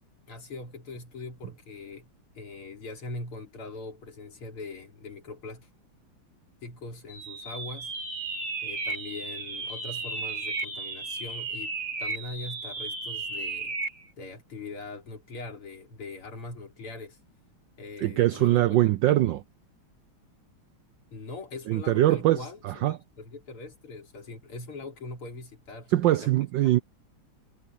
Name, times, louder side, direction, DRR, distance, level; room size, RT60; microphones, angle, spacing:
voice 1, 0.3-2.1 2.4-5.7 6.6-7.9 8.6-11.7 12.0-13.8 14.2-17.2 17.8-19.2 21.1-26.3 26.6-26.7, left 3 dB, 90° left, 4.5 m, -41 dB
sound 1, 7.1-14.0, right 3 dB, 85° right, 6.0 m, -34 dB
voice 2, 18.0-19.4 21.7-23.0 25.9-26.8, right 14 dB, 70° right, 1.2 m, -23 dB
omnidirectional pair, 2.4 m